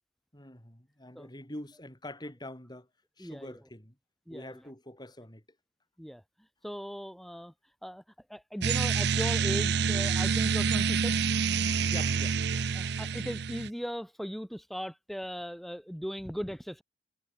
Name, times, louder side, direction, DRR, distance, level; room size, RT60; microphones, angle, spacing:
voice 1, 0.3-2.9 3.2-3.9 4.3-5.4 11.9-12.6, left 1 dB, 25° left, 6.8 m, -45 dB
voice 2, 3.2-3.6 4.3-4.6 6.0-6.2 6.6-7.5 7.8-8.0 8.3-11.3 12.7-16.8, equal, ahead, 5.2 m, -38 dB
sound 1, 8.6-13.7, right 6 dB, 65° right, 0.6 m, -27 dB
head